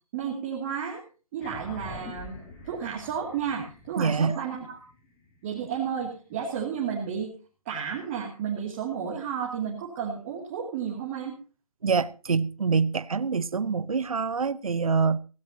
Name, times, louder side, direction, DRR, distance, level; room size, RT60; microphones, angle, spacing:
voice 1, 0.1-1.0 1.3-4.8 5.4-7.3 7.7-11.3, right 7 dB, 20° right, 2.6 m, -32 dB
sound 1, 1.4-6.2, left 1 dB, 10° left, 2.4 m, -45 dB
voice 2, 4.0-4.4 11.8-15.2, right 5 dB, 70° right, 0.9 m, -25 dB
17.5 x 17.0 x 2.8 m
hypercardioid pair, 165°, 19 cm